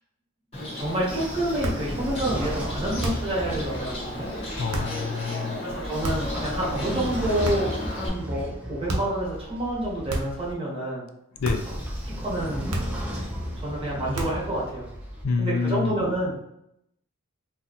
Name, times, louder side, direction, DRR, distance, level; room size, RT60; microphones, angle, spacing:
Bird, 0.5-8.1, left 1 dB, 30° left, 0.8 m, -35 dB
voice 1, 0.5-4.3 5.6-11.0 12.2-12.8 13.1-13.3 13.6-14.9 15.4-16.6, right 1 dB, 25° right, -6 dB, 1.1 m, -28 dB
Train / Sliding door, 0.8-4.8 5.7-10.5 11.4-15.2, equal, 5° right, 0.4 m, -35 dB
sound 1, 1.6-1.9 3.0-3.4 4.7-5.0 6.0-6.4 7.4-7.8 8.9-9.2 10.1-10.5 11.4-11.8 12.7-13.1 14.1-14.5, right 1 dB, 85° right, 0.7 m, -31 dB
voice 2, 4.5-5.6 11.4-11.7 15.2-16.0, left 5 dB, 65° left, 6 dB, 0.3 m, -27 dB
2.7 x 2.2 x 3.9 m, 0.80 s
head